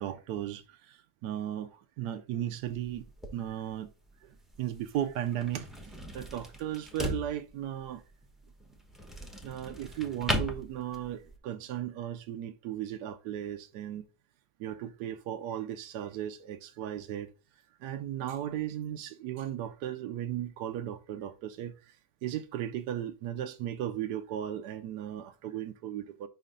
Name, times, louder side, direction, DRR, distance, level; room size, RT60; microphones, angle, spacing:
voice 1, 0.0-3.9 4.2-8.0 9.4-14.0 14.6-17.3 17.8-22.0 22.2-26.3, right 11 dB, 75° right, 1.1 m, -36 dB
Heavy dresser drawer, 2.6-11.4, equal, ahead, 0.4 m, -39 dB
5.4 x 5.0 x 3.7 m
omnidirectional pair, 1.9 m